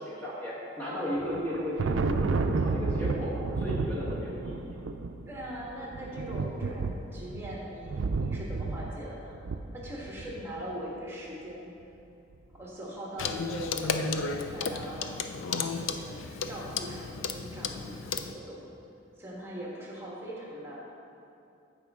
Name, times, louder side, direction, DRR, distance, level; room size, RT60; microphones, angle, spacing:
voice 1, 0.0-3.3 3.6-4.8, equal, 10° left, -9 dB, 1.2 m, -34 dB
Thunder, 1.2-10.6, right 4 dB, 75° right, 0.4 m, -32 dB
voice 2, 5.3-9.4 9.7-11.7 12.5-15.2 15.7-18.7 19.2-20.8, equal, 15° right, -5 dB, 1.5 m, -41 dB
Clock, 13.2-18.3, left 5 dB, 85° left, 0.5 m, -33 dB
14.5 x 5.2 x 3.6 m, 2.7 s
head